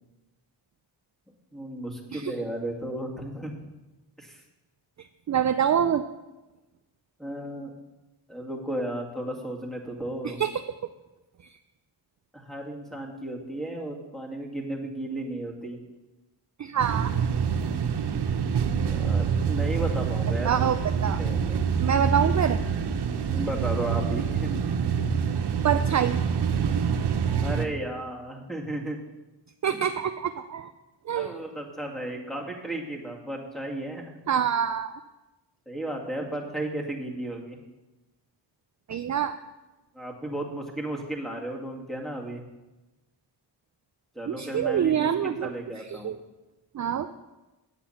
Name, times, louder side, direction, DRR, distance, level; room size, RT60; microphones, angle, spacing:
voice 1, 1.5-3.7 4.2-4.4 7.2-7.7 8.3-10.4 12.3-15.8 18.8-21.6 23.3-24.6 27.4-29.0 29.7-29.8 31.1-34.2 35.7-37.6 39.9-42.4 44.1-46.1, right 1 dB, ahead, -1 dB, 2.2 m, -34 dB
voice 2, 5.0-6.0 10.2-10.6 16.6-17.1 20.4-21.2 21.8-22.6 25.6-26.2 29.6-30.7 31.1-31.4 34.3-35.0 38.9-39.4 44.3-46.2 46.7-47.1, right 8 dB, 40° right, 9 dB, 0.5 m, -26 dB
sound 1, 16.8-27.7, right 6 dB, 65° right, 0.9 m, -26 dB
8.3 x 8.3 x 5.8 m, 1.1 s
cardioid pair, 65°, 44 cm